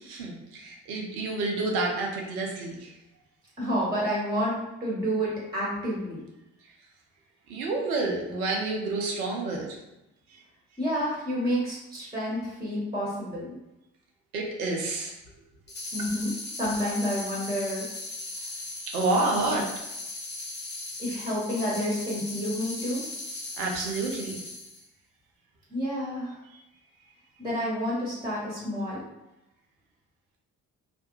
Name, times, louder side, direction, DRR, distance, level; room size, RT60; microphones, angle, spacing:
voice 1, 0.1-2.9 7.5-9.7 14.3-15.2 18.9-19.7 23.6-24.4, right 3 dB, 85° right, 0 dB, 0.6 m, -29 dB
voice 2, 3.6-6.2 10.8-13.6 15.9-17.9 18.5-18.8 19.3-19.6 21.0-23.1 25.7-26.4 27.4-29.0, equal, 10° right, -5 dB, 1.1 m, -29 dB
sound 1, 15.7-24.8, left 2 dB, 25° left, 0.8 m, -38 dB
2.4 x 2.1 x 3.0 m, 0.92 s
hypercardioid pair, 40°, 42 cm